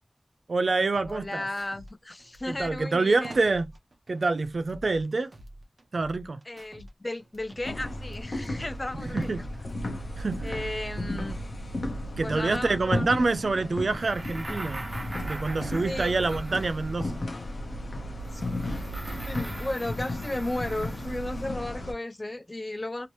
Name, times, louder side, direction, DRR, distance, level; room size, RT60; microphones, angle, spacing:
voice 1, 0.5-1.4 2.5-3.7 4.1-5.3 5.9-6.4 9.1-9.4 10.2-10.5 12.2-14.9 15.2-17.2, right 3 dB, 80° right, 0.4 m, -26 dB
sound 1, 0.9-1.9 2.2-5.1 5.3-6.9 7.2-10.0 10.3-10.9, equal, 60° right, 1.0 m, -49 dB
voice 2, 1.1-3.4 6.5-9.5 10.4-11.4 12.2-13.4 15.8-16.1 18.3-18.9 19.2-23.1, left 1 dB, 35° left, 0.4 m, -35 dB
sound 2, 7.6-21.9, left 1 dB, 75° left, 0.8 m, -34 dB
sound 3, 13.9-17.1 18.2-21.4, right 1 dB, 30° right, 0.6 m, -41 dB
2.9 x 2.9 x 3.0 m
wide cardioid pair, 55°, 0 cm